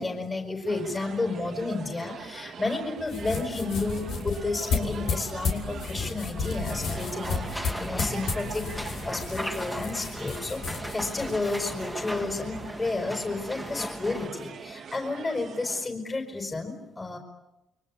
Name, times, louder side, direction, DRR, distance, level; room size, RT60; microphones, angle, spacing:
voice 1, 0.0-10.6 10.9-17.2, left 3 dB, 25° left, 4 dB, 4.8 m, -31 dB
sound 1, 0.7-15.9, right 7 dB, 60° right, 2.0 m, -42 dB
sound 2, 3.0-12.7, left 5 dB, 80° left, 6.3 m, -33 dB
sound 3, 6.7-14.3, equal, 5° left, 2.2 m, -37 dB
29.5 x 23.5 x 8.5 m, 0.97 s
cardioid pair, 90°, 0 cm